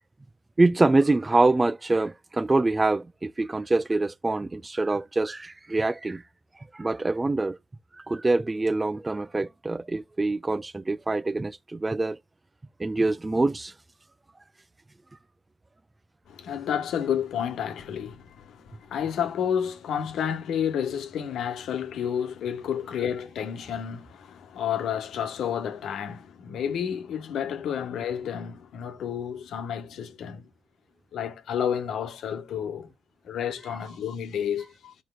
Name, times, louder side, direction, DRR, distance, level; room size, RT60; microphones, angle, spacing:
voice 1, 0.6-6.2 6.7-7.6 7.9-12.2 12.8-13.7, right 2 dB, 20° right, 0.3 m, -25 dB
voice 2, 16.3-30.5 31.1-32.9 33.2-34.9, left 8 dB, 75° left, 1.1 m, -30 dB
13.0 x 4.5 x 2.2 m
cardioid pair, 90°, 0 cm